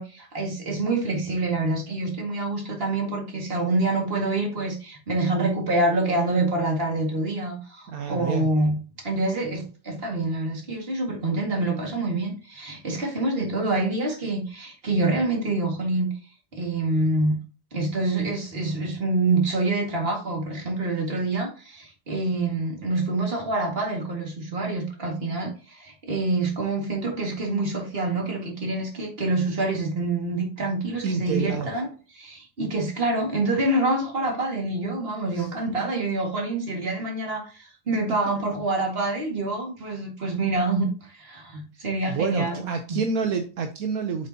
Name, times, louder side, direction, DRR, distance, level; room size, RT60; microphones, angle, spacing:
voice 1, 0.0-8.8 9.0-16.1 16.5-17.3 17.7-31.9 32.1-42.6 42.9-43.0, right 2 dB, 30° right, 1 dB, 2.0 m, -26 dB
voice 2, 7.9-8.5 31.0-31.7 35.3-35.5 42.1-44.3, right 5 dB, 65° right, 5 dB, 0.9 m, -28 dB
7.6 x 6.5 x 2.8 m, 0.36 s
omnidirectional pair, 2.3 m